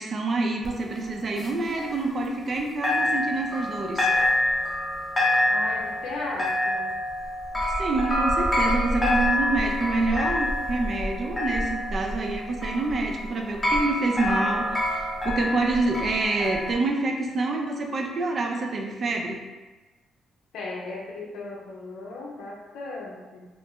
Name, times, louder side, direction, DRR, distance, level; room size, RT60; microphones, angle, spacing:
voice 1, 0.0-4.1 7.8-19.4, right 3 dB, 45° right, 2 dB, 0.4 m, -27 dB
sound 1, 0.6-2.6 2.8-16.7, left 1 dB, 25° left, 0.7 m, -27 dB
voice 2, 5.5-6.9 20.5-23.5, left 2 dB, 80° left, -2 dB, 0.5 m, -36 dB
2.5 x 2.0 x 3.5 m, 1.2 s
cardioid pair, 90°, 0 cm